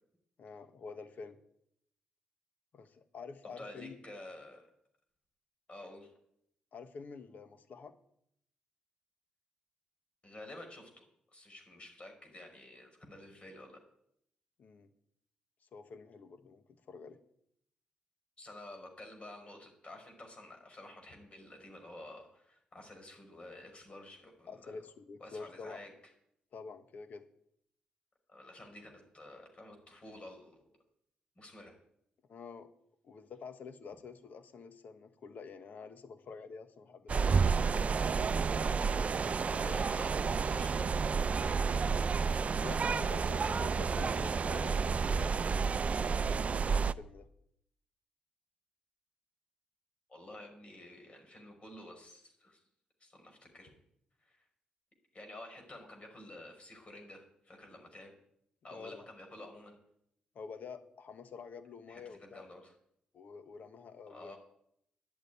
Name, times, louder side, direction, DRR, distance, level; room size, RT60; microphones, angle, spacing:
voice 1, 0.4-1.4 2.7-4.0 6.7-7.9 14.6-14.9 15.6-17.2 24.5-25.8 26.5-27.2 32.3-32.7 33.0-37.4 38.2-39.1 39.4-40.0 42.6-45.3 46.0-47.3 58.7-59.0 60.3-62.5 63.1-64.3, left 5 dB, 65° left, 10 dB, 1.5 m, -48 dB
voice 2, 3.6-4.7 5.7-6.1 10.2-11.0 11.3-13.8 18.4-24.5 25.2-25.9 28.3-30.6 31.4-31.7 39.6-40.9 50.1-52.6 53.0-53.7 54.2-54.4 55.1-58.1 58.6-59.8 61.9-62.7 64.1-64.4, left 1 dB, 35° left, 3 dB, 5.0 m, -51 dB
sound 1, 37.1-46.9, right 5 dB, 45° right, 0.5 m, -30 dB
11.5 x 8.5 x 9.6 m, 0.72 s
cardioid pair, 65°, 3 cm